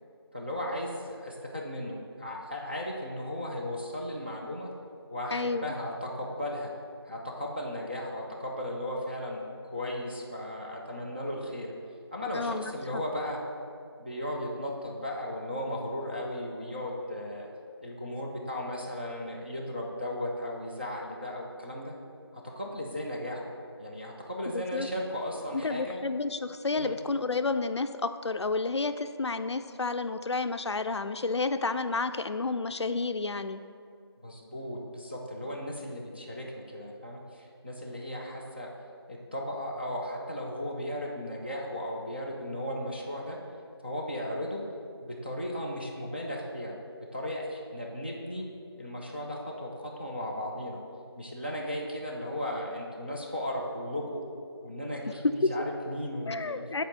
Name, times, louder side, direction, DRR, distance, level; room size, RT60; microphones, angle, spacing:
voice 1, 0.3-4.7 5.1-6.7 7.0-9.4 9.7-11.7 12.1-13.4 14.0-17.5 17.8-21.9 22.3-23.5 23.8-26.0 26.8-27.0 34.2-38.7 39.1-43.4 43.8-44.6 45.0-46.8 47.1-48.5 48.8-50.8 51.2-54.2 54.6-56.6, left 1 dB, 25° right, -2 dB, 0.5 m, -36 dB
voice 2, 5.3-5.7 12.3-13.0 24.5-24.9 25.5-33.6 56.3-56.8, left 3 dB, 85° left, 10 dB, 0.4 m, -31 dB
5.4 x 4.4 x 6.2 m, 2.3 s
figure-of-eight pair, 175°, 14 cm